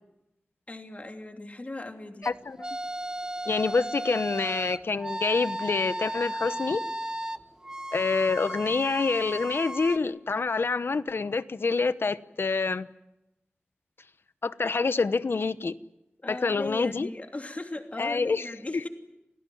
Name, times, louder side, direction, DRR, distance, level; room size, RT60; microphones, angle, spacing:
voice 1, 0.7-2.3 16.2-18.9, left 2 dB, 35° left, 2.9 m, -38 dB
voice 2, 2.2-2.7 3.5-6.8 7.9-12.9 14.4-15.8 16.3-17.1 18.0-18.5, left 4 dB, 75° left, 1.0 m, -27 dB
sound 1, 2.2-10.0, right 1 dB, 15° right, 1.0 m, -35 dB
29.0 x 18.5 x 9.5 m
wide cardioid pair, 80°, 4 cm